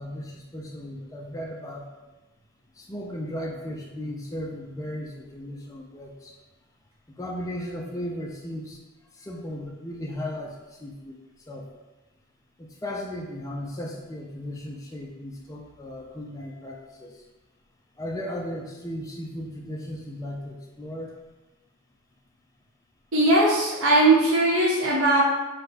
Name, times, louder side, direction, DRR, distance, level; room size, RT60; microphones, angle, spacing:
voice 1, 0.0-1.9 2.8-6.3 7.2-8.8 9.2-11.1 11.5-11.7 12.6-17.2 18.0-21.1, left 1 dB, 15° left, -1 dB, 0.4 m, -36 dB
voice 2, 23.1-25.2, right 2 dB, 65° right, -6 dB, 1.0 m, -19 dB
5.3 x 2.3 x 4.2 m, 1.1 s
head